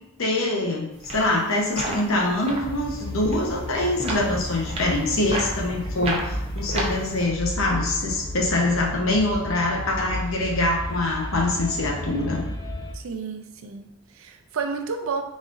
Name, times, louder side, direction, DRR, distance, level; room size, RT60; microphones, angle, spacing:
voice 1, 0.2-12.4, left 2 dB, 80° left, -1 dB, 0.9 m, -24 dB
sound 1, 0.9-7.2, right 1 dB, 30° right, 0.7 m, -33 dB
sound 2, 2.6-12.9, equal, 20° left, 0.4 m, -33 dB
voice 2, 12.9-15.2, right 5 dB, 75° right, 5 dB, 0.5 m, -31 dB
4.1 x 3.8 x 2.5 m, 0.87 s
head